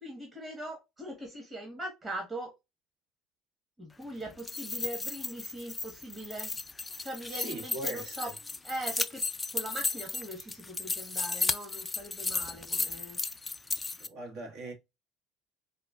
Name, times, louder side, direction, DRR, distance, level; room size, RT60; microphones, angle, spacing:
voice 1, 0.0-2.5 3.8-6.5 7.0-8.3 8.6-9.2 9.5-13.2, right 1 dB, 20° right, 1.2 m, -41 dB
sound 1, 4.3-14.1, left 3 dB, 15° left, 0.3 m, -34 dB
voice 2, 7.3-8.3 14.0-14.7, right 2 dB, 70° right, 1.5 m, -40 dB
4.9 x 2.2 x 2.3 m
supercardioid pair, 100°, 0 cm